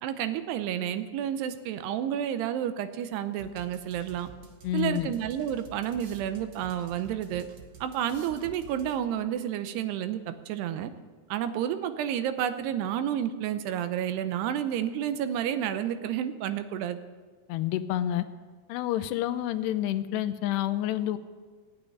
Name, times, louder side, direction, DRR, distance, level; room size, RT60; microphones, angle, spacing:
voice 1, 0.0-4.3 4.7-7.5 7.8-10.9 11.3-17.0, right 10 dB, 80° right, 10 dB, 2.8 m, -30 dB
sound 1, 3.4-9.2, right 6 dB, 55° right, 1.5 m, -50 dB
voice 2, 4.6-5.1 17.5-18.2 18.7-21.2, left 12 dB, 80° left, 11 dB, 2.8 m, -28 dB
16.5 x 8.7 x 10.0 m, 1.5 s
omnidirectional pair, 4.8 m